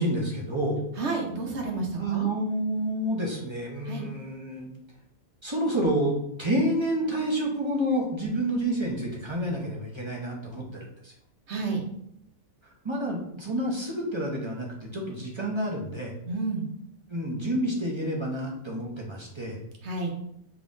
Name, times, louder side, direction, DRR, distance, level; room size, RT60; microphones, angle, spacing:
voice 1, 0.0-0.8 2.0-4.7 5.4-11.1 12.6-16.1 17.1-19.6, right 1 dB, 25° right, -2 dB, 0.6 m, -29 dB
voice 2, 1.0-2.3 3.9-4.1 11.5-11.8 16.3-16.7 19.8-20.1, right 3 dB, 55° right, 0 dB, 1.1 m, -30 dB
5.3 x 3.0 x 2.6 m, 0.74 s
omnidirectional pair, 1.5 m